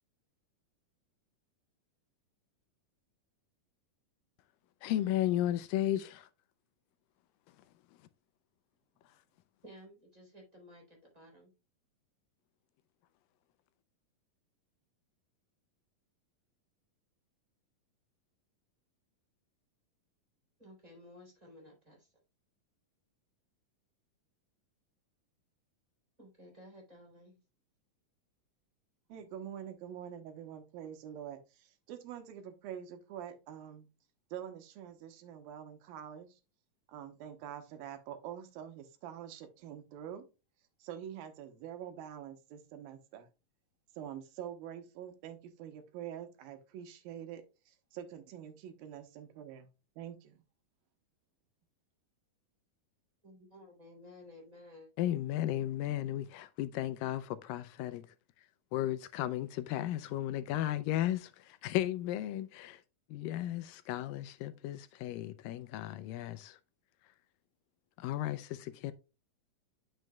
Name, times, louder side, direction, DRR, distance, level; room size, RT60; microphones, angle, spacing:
voice 1, 4.8-6.3 55.0-58.0 58.7-62.8 63.1-66.6 68.0-68.9, left 13 dB, 80° left, 2.2 m, -34 dB
voice 2, 9.6-11.5 20.6-22.1 26.2-27.4 53.2-54.9, left 1 dB, 10° right, 3.1 m, -55 dB
voice 3, 29.1-33.9 34.3-36.4 36.9-40.2 40.8-43.3 44.0-49.7 50.0-50.4, right 9 dB, 85° right, 2.8 m, -46 dB
9.1 x 6.3 x 2.3 m
omnidirectional pair, 4.0 m